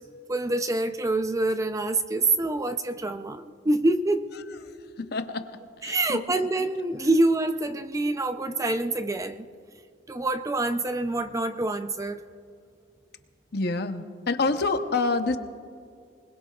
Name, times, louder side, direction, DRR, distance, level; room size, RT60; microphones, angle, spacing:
voice 1, 0.3-4.3 5.8-9.5 10.1-12.2, right 2 dB, 20° right, 9 dB, 0.5 m, -26 dB
voice 2, 5.0-6.2 13.5-15.4, left 3 dB, 60° left, 8 dB, 0.8 m, -27 dB
25.0 x 20.5 x 2.4 m, 2.3 s
head